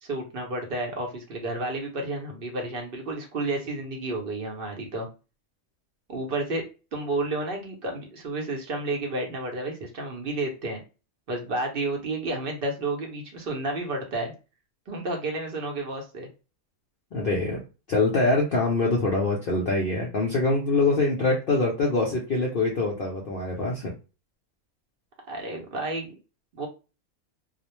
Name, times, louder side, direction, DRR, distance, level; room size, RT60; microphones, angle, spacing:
voice 1, 0.0-5.1 6.1-6.6 6.9-10.8 11.3-14.3 14.9-16.3 25.3-26.1 26.5-26.7, right 2 dB, 55° right, 1 dB, 0.6 m, -31 dB
voice 2, 17.1-17.6 17.9-23.9, left 3 dB, 65° left, -2 dB, 0.5 m, -24 dB
2.4 x 2.0 x 2.9 m, 0.31 s
omnidirectional pair, 1.5 m